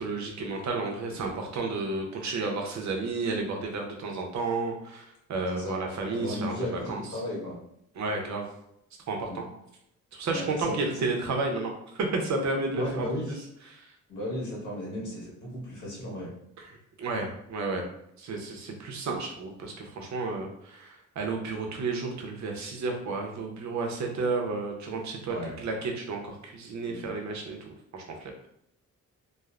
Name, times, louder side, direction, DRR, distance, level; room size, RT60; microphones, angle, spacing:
voice 1, 0.0-5.0 5.3-7.0 8.0-8.5 9.1-9.4 10.1-13.1 13.7-13.9 16.6-17.8 18.2-28.3, right 3 dB, 65° right, 2 dB, 0.6 m, -32 dB
voice 2, 6.1-7.6 9.3-9.4 10.2-10.7 12.7-13.4 14.1-16.3 25.3-25.5 26.9-27.0, left 1 dB, 70° left, -5 dB, 1.4 m, -35 dB
3.1 x 2.0 x 2.4 m, 0.75 s
wide cardioid pair, 145°, 31 cm